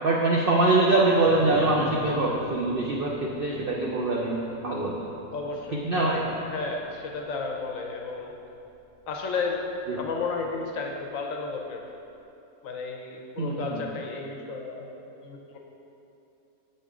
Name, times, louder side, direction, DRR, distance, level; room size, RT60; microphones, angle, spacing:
voice 1, 0.0-5.0 5.8-6.3 9.9-10.0 13.4-13.8, right 2 dB, 80° right, -2 dB, 0.5 m, -24 dB
sound 1, 1.3-10.7, left 2 dB, 10° right, 1.2 m, -46 dB
voice 2, 5.3-6.2 6.4-8.3 9.1-11.8 12.6-14.9 15.2-15.6, left 4 dB, 65° left, 1 dB, 0.9 m, -33 dB
7.1 x 5.3 x 3.6 m, 2.8 s
omnidirectional pair, 1.7 m